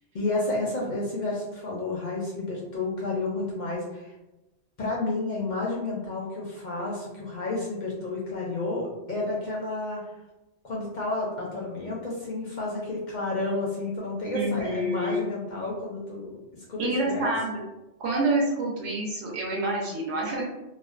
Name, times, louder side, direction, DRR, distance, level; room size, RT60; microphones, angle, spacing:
voice 1, 0.1-4.1 4.8-10.0 10.6-17.3, left 2 dB, 60° left, -4 dB, 0.5 m, -31 dB
voice 2, 14.3-15.3 16.8-17.6 18.0-20.4, right 1 dB, 75° right, -3 dB, 0.8 m, -27 dB
2.5 x 2.1 x 2.4 m, 0.99 s
omnidirectional pair, 1.2 m